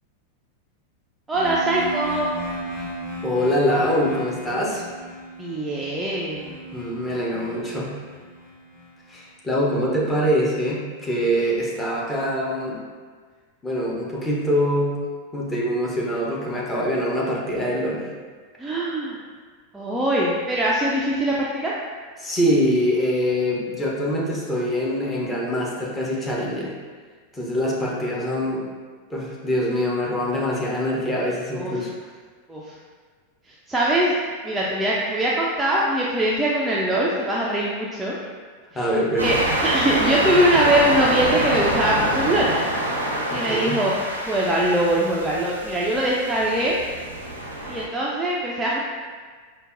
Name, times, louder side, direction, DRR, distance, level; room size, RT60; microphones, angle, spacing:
sound 1, 1.3-9.1, right 1 dB, 35° left, 1.2 m, -35 dB
voice 1, 1.3-2.3 5.4-6.6 18.6-19.2 19.7-21.7 31.5-31.9 32.5-32.8 33.5-34.1 34.4-38.2 38.7-42.5 43.3-43.9 44.3-46.8 47.7-48.8, right 1 dB, 10° right, -6 dB, 0.4 m, -22 dB
voice 2, 3.2-4.8 6.7-7.9 9.1-12.8 13.6-15.0 15.3-18.0 22.2-26.7 27.3-28.6 29.1-31.9 38.7-39.4 43.3-43.8, equal, 15° left, -4 dB, 0.7 m, -24 dB
sound 2, 39.2-47.9, right 1 dB, 80° right, 0.5 m, -26 dB
5.0 x 2.2 x 2.5 m, 1.5 s
figure-of-eight pair, 90°, 0 cm